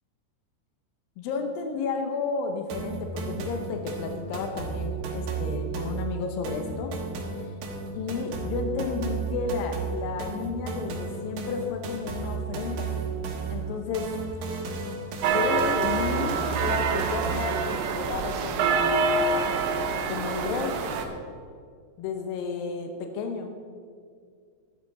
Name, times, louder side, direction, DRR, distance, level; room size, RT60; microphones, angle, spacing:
voice 1, 1.2-6.9 7.4-7.5 7.9-13.0 13.5-14.1 15.3-19.0 20.1-20.8 22.0-23.5, left 4 dB, 80° left, 5 dB, 2.1 m, -32 dB
sound 1, 2.7-17.7, right 4 dB, 65° right, 2.5 m, -33 dB
sound 2, 15.2-21.0, right 4 dB, 85° right, 2.0 m, -26 dB
12.5 x 10.5 x 4.2 m, 2.1 s
omnidirectional pair, 5.1 m